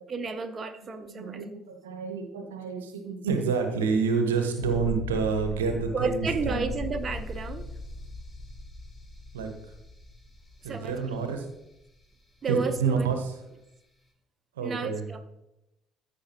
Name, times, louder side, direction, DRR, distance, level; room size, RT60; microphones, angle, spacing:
voice 1, 0.1-1.5 5.9-7.7 10.6-11.2 12.4-13.1 14.6-15.4, right 4 dB, 35° right, 7 dB, 0.7 m, -32 dB
voice 2, 0.8-6.7 9.3-9.7 10.6-11.5 12.5-13.4 14.6-15.1, right 5 dB, 80° right, 6 dB, 0.8 m, -29 dB
sound 1, 4.6-11.4 11.7-11.8, left 2 dB, 25° left, 1.5 m, -39 dB
13.5 x 5.1 x 2.9 m, 0.88 s
figure-of-eight pair, 50°, 0 cm